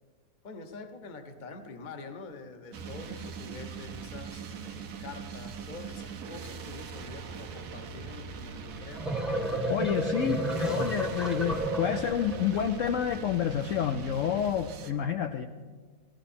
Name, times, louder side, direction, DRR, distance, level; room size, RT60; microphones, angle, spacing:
voice 1, 0.4-9.1, left 3 dB, 35° left, 7 dB, 0.9 m, -45 dB
sound 1, 2.7-14.9, right 5 dB, 90° right, 1.4 m, -42 dB
sound 2, 8.8-12.6, right 1 dB, ahead, 0.7 m, -31 dB
voice 2, 9.7-15.5, left 9 dB, 70° left, 7 dB, 0.8 m, -29 dB
16.0 x 14.5 x 4.3 m, 1.5 s
omnidirectional pair, 1.6 m